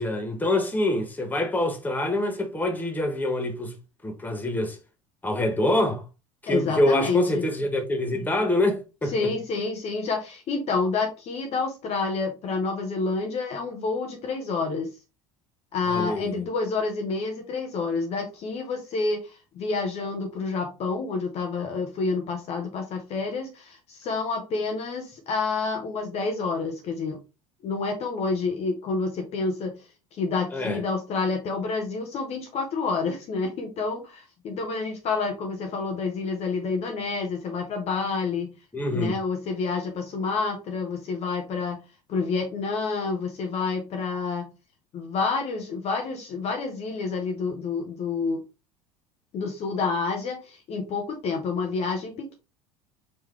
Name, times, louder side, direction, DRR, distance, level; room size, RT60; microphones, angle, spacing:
voice 1, 0.0-3.7 4.0-4.8 5.2-6.0 6.4-9.1 15.9-16.3 30.5-30.8 38.7-39.2, left 1 dB, 10° left, 1.1 m, -25 dB
voice 2, 6.5-7.4 9.0-14.9 15.7-27.2 27.6-29.8 30.1-38.5 38.9-41.8 42.1-44.5 44.9-48.4 49.3-52.4, left 4 dB, 40° left, 0.8 m, -28 dB
4.8 x 3.0 x 3.3 m
figure-of-eight pair, 70°, 17 cm